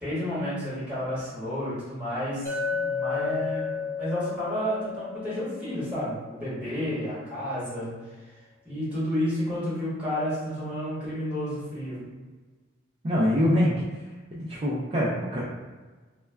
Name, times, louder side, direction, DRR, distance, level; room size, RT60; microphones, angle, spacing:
voice 1, 0.0-8.0 8.6-12.1, equal, 5° right, -10 dB, 1.2 m, -31 dB
Chink clink, 2.5-6.7, left 5 dB, 45° left, 0.9 m, -33 dB
voice 2, 13.0-13.7 14.3-15.4, equal, 30° right, -7 dB, 0.3 m, -24 dB
2.2 x 2.1 x 3.3 m, 1.3 s
head